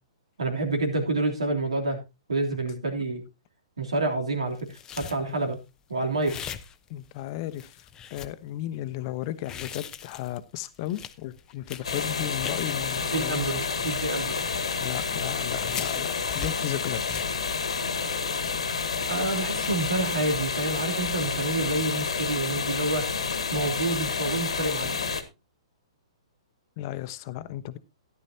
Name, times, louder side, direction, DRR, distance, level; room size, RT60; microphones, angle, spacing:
voice 1, 0.4-2.0 2.3-3.2 3.8-5.6 5.9-6.3 13.1-14.5 19.1-25.2, right 2 dB, 85° right, 3.2 m, -28 dB
sound 1, 4.6-5.5 6.2-7.2 7.5-8.3 9.2-12.8 13.2-14.8 15.1-15.2 15.5-17.5, left 7 dB, 20° left, 0.8 m, -41 dB
voice 2, 6.9-13.9 14.8-17.1 26.8-27.8, left 13 dB, 45° left, 1.0 m, -35 dB
sound 2, 11.8-25.2, left 5 dB, 85° left, 1.6 m, -29 dB
13.5 x 11.0 x 2.8 m
hypercardioid pair, 125°, 3 cm